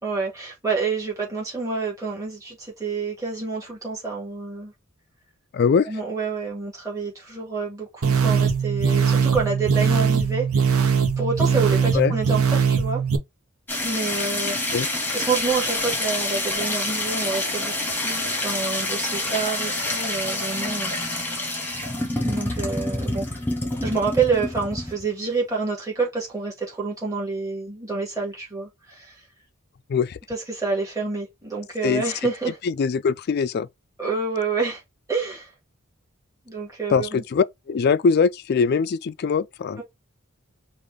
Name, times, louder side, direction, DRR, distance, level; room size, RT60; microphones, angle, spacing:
voice 1, 0.0-4.7 5.8-10.9 11.2-13.0 13.8-14.7 15.1-20.9 22.3-23.3 23.8-29.2 30.3-32.6 34.0-34.8 35.1-35.5 36.5-37.2 39.8-39.9, right 4 dB, 15° right, 2.1 m, -28 dB
voice 2, 5.5-5.9 11.9-12.1 14.7-14.9 29.9-30.2 31.8-32.0 32.6-33.7 36.9-39.8, left 5 dB, 45° left, 0.3 m, -22 dB
sound 1, 8.0-13.2, right 6 dB, 80° right, 0.8 m, -21 dB
sound 2, 13.7-25.1, left 2 dB, 10° left, 1.2 m, -27 dB
5.1 x 2.5 x 3.4 m
head